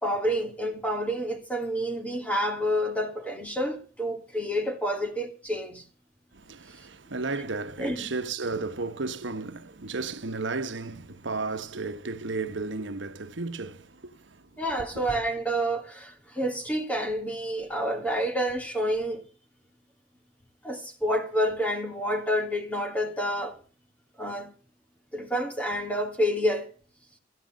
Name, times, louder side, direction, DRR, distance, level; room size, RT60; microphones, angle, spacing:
voice 1, 0.0-5.9 7.8-8.1 14.6-19.2 20.6-23.6 24.2-24.5 25.1-26.7, equal, 10° left, 2.9 m, -29 dB
voice 2, 6.3-14.6, right 3 dB, 85° right, 1.2 m, -34 dB
15.0 x 9.3 x 7.5 m
head